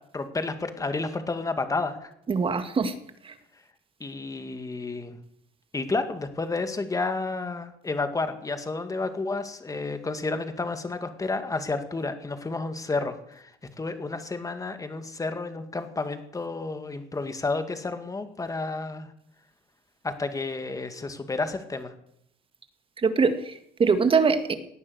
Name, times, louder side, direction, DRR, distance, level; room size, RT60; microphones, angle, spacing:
voice 1, 0.1-2.1 4.0-5.2 5.7-13.5 13.8-19.1 20.0-21.9, left 3 dB, 20° left, 8 dB, 2.1 m, -31 dB
voice 2, 2.3-2.9 3.2-3.3 23.0-23.5 23.8-24.5, right 5 dB, 30° right, 9 dB, 1.9 m, -22 dB
18.0 x 9.5 x 8.1 m, 0.75 s
cardioid pair, 110°, 17 cm